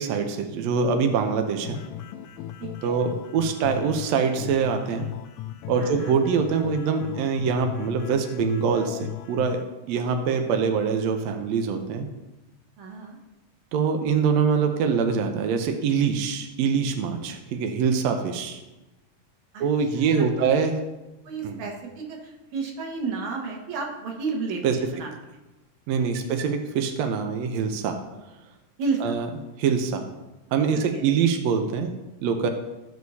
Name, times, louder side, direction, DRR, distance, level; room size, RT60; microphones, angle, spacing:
voice 1, 0.0-1.8 2.8-5.0 5.7-12.1 13.7-18.6 19.6-20.8 21.4-21.6 24.6-24.8 25.9-28.0 29.0-29.3 29.6-30.0 30.5-31.9 32.2-32.5, right 6 dB, 85° right, 5 dB, 1.5 m, -24 dB
sound 1, 1.6-9.6, left 12 dB, 80° left, 2.0 m, -37 dB
voice 2, 2.6-3.0 5.8-6.2 12.8-13.2 19.5-19.6 19.9-20.5 21.3-25.1 26.0-26.3 28.8-29.1 30.9-31.1, right 4 dB, 60° right, 1 dB, 2.4 m, -32 dB
15.5 x 6.4 x 2.8 m, 1.0 s
omnidirectional pair, 4.1 m